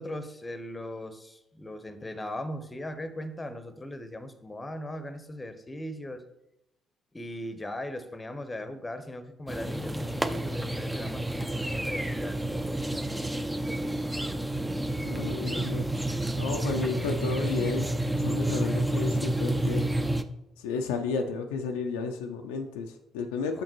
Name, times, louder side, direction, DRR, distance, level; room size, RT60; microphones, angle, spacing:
voice 1, 0.0-6.2 7.1-14.3 23.5-23.6, left 1 dB, 20° left, 11 dB, 0.7 m, -39 dB
sound 1, 9.5-20.2, right 1 dB, 10° right, 0.4 m, -30 dB
voice 2, 15.0-15.8 16.4-17.9 18.2-19.9 20.6-23.6, left 5 dB, 75° left, 4 dB, 0.4 m, -32 dB
6.5 x 5.8 x 2.9 m, 0.85 s
figure-of-eight pair, 45°, 0 cm